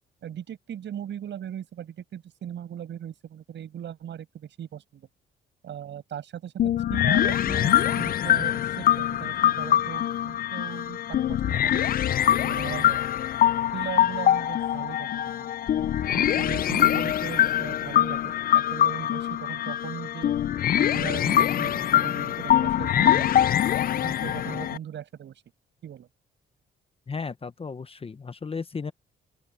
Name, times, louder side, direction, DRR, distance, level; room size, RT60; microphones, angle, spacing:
voice 1, 0.2-5.1 5.6-6.5 6.9-11.9 12.4-13.1 13.7-15.5 16.0-20.3 20.7-23.4 24.0-25.4 25.8-26.1, right 10 dB, 65° right, 7.2 m, -38 dB
sound 1, 6.6-24.8, left 11 dB, 50° left, 0.4 m, -23 dB
voice 2, 27.1-28.9, left 5 dB, 30° left, 1.0 m, -34 dB
open air
cardioid pair, 90°, 20 cm